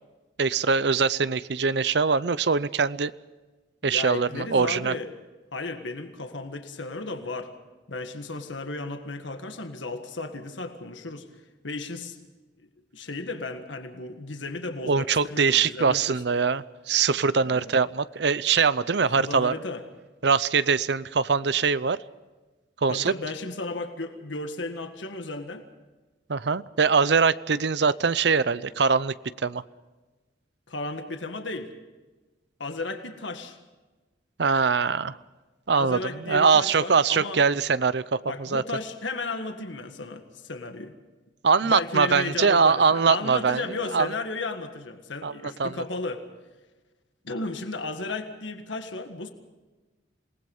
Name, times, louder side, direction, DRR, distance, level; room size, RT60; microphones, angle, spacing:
voice 1, 0.4-3.1 3.8-4.9 14.8-19.5 20.2-22.0 22.8-23.1 26.3-29.1 29.4-29.6 34.4-35.2 35.7-38.6 41.4-43.6 43.9-44.1 45.2-45.3 45.6-45.7, right 5 dB, 65° right, 16 dB, 0.6 m, -22 dB
voice 2, 3.8-5.1 5.5-7.6 7.9-11.3 11.6-12.2 12.9-16.2 17.5-17.7 19.0-19.8 22.9-25.7 30.7-31.7 32.6-33.6 35.8-37.4 38.2-40.9 41.6-46.2 47.2-49.3, left 3 dB, 90° left, 6 dB, 1.8 m, -34 dB
27.5 x 19.0 x 5.5 m, 1.2 s
head